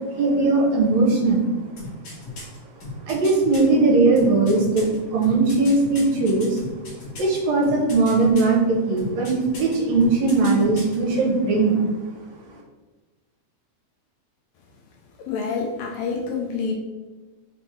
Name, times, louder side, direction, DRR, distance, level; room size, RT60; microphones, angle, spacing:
voice 1, 0.2-1.5 3.1-6.6 7.1-11.8, right 3 dB, 75° right, -1 dB, 1.8 m, -19 dB
sound 1, 1.8-3.6 4.2-7.4 7.6-8.6 9.0-9.8 10.0-11.0 11.3-11.4, left 2 dB, 55° left, 2.0 m, -37 dB
voice 2, 15.2-16.7, left 5 dB, 80° left, 0 dB, 1.6 m, -27 dB
4.8 x 3.4 x 3.1 m, 1.2 s
omnidirectional pair, 3.3 m